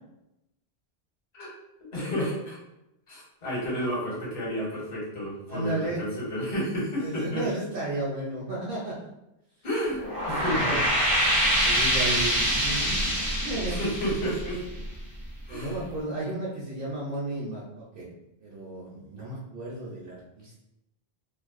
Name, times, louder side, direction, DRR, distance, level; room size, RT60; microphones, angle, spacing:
voice 1, 1.8-2.6 3.1-7.4 9.6-10.9 13.6-14.8 15.4-15.8 16.2-16.3, equal, 50° left, -6 dB, 1.1 m, -31 dB
voice 2, 5.5-6.1 7.0-9.0 10.3-10.8 11.6-13.8 15.5-18.1 18.4-20.5, right 2 dB, 65° right, -6 dB, 0.8 m, -33 dB
sound 1, 9.9-15.2, equal, 25° left, 0.5 m, -25 dB
2.4 x 2.1 x 2.4 m, 0.90 s
omnidirectional pair, 1.0 m